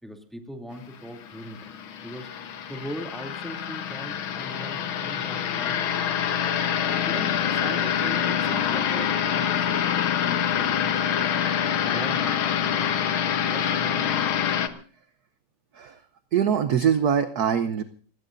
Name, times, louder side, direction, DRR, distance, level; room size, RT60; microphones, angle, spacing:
voice 1, 0.0-2.3 2.7-6.2 7.0-11.3 11.8-13.1 13.5-14.4, equal, ahead, 2 dB, 2.6 m, -40 dB
sound 1, 1.2-14.7, left 8 dB, 85° left, 2.0 m, -26 dB
voice 2, 16.3-17.8, right 8 dB, 60° right, 9 dB, 1.2 m, -23 dB
29.5 x 17.0 x 2.6 m, 0.42 s
omnidirectional pair, 2.2 m